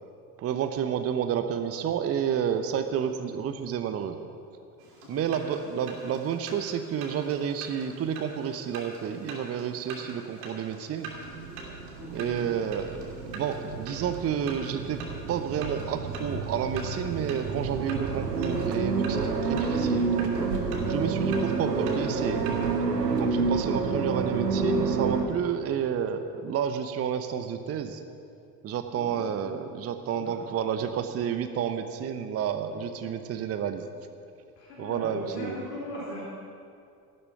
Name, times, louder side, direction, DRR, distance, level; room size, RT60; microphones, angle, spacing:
voice 1, 0.4-4.2 5.1-11.1 12.1-13.0 13.3-15.0 15.3-20.3 20.9-22.4 23.1-28.0 28.6-33.9 34.8-35.6, right 8 dB, 30° right, 9 dB, 0.9 m, -30 dB
sound 1, 4.8-22.8, right 3 dB, 65° right, 3.0 m, -45 dB
sound 2, 11.1-25.2, right 4 dB, 80° right, 1.2 m, -29 dB
voice 2, 12.0-12.5 25.4-25.5 29.0-29.6 30.1-30.3 32.7-33.1 34.6-36.2, left 1 dB, 75° left, -6 dB, 3.2 m, -40 dB
14.0 x 12.0 x 5.7 m, 2.4 s
figure-of-eight pair, 65°, 48 cm